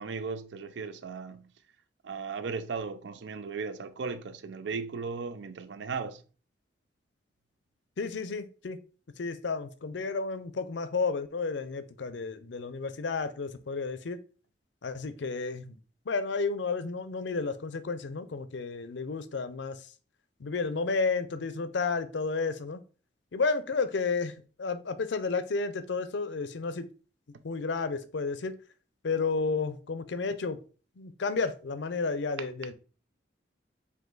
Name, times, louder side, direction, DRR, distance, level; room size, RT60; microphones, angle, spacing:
voice 1, 0.0-1.5 2.0-6.2, right 4 dB, 75° right, 0.5 m, -36 dB
voice 2, 8.0-8.8 9.2-14.2 14.8-15.8 16.1-19.9 20.4-22.8 23.3-26.9 27.4-28.6 29.0-30.6 31.0-32.7, left 4 dB, 75° left, 0.5 m, -32 dB
5.0 x 2.7 x 3.8 m
head